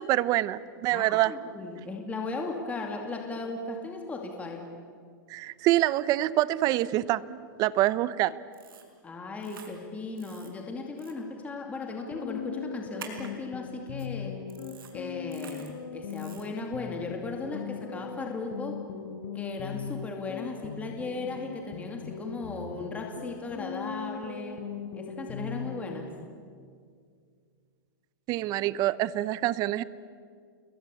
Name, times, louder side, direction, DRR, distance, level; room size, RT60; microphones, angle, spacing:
voice 1, 0.0-1.3 5.3-8.4 28.3-29.8, right 15 dB, 35° right, 18 dB, 0.8 m, -26 dB
voice 2, 0.9-4.7 9.0-14.4 14.9-18.9 19.3-24.7 24.9-26.1, left 3 dB, 10° left, 2 dB, 2.5 m, -37 dB
sound 1, 8.5-8.9 9.4-9.7 10.2-10.5 11.0-11.1 13.0-13.3 14.0-14.1 14.5-14.9 15.3-15.7 16.1-16.5, right 7 dB, 85° right, 5.1 m, -47 dB
sound 2, 12.1-26.0, left 7 dB, 55° left, 5.9 m, -39 dB
29.0 x 22.0 x 8.6 m, 2.1 s
hypercardioid pair, 145°, 12 cm